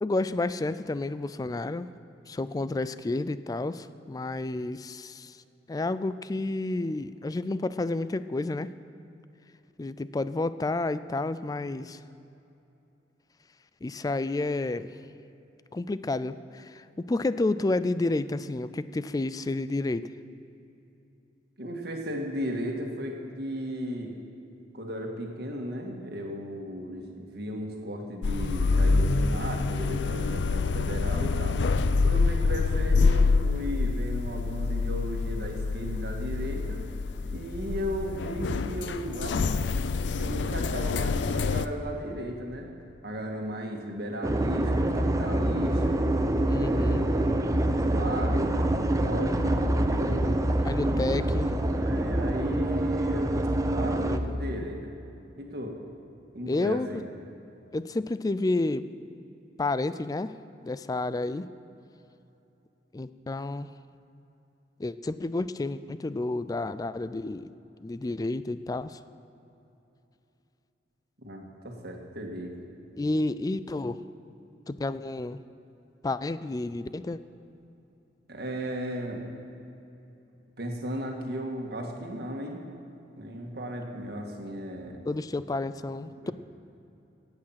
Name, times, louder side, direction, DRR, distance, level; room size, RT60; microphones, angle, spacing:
voice 1, 0.0-1.9 2.3-5.4 5.7-8.7 9.8-12.0 13.8-14.9 15.7-20.1 46.5-47.0 50.6-51.5 54.0-54.7 56.5-57.0 57.7-58.9 59.6-60.3 60.6-61.5 62.9-63.7 64.8-67.5 67.8-69.0 73.0-74.0 74.7-75.4 76.0-77.2 85.0-86.3, left 2 dB, 20° left, 14 dB, 0.3 m, -30 dB
voice 2, 21.6-24.1 24.7-31.6 32.0-36.8 37.3-39.4 40.2-42.7 43.0-46.0 46.5-50.4 50.8-51.1 51.8-53.4 53.7-54.9 55.4-55.7 56.3-57.0 71.2-72.5 78.3-79.2 80.6-82.6 83.2-85.0 86.2-86.3, equal, 65° right, 1 dB, 1.8 m, -35 dB
sound 1, 28.2-41.7, left 4 dB, 90° left, 0.5 m, -26 dB
sound 2, 44.2-54.2, right 1 dB, 20° right, 0.6 m, -26 dB
16.0 x 8.8 x 5.8 m, 2.8 s
head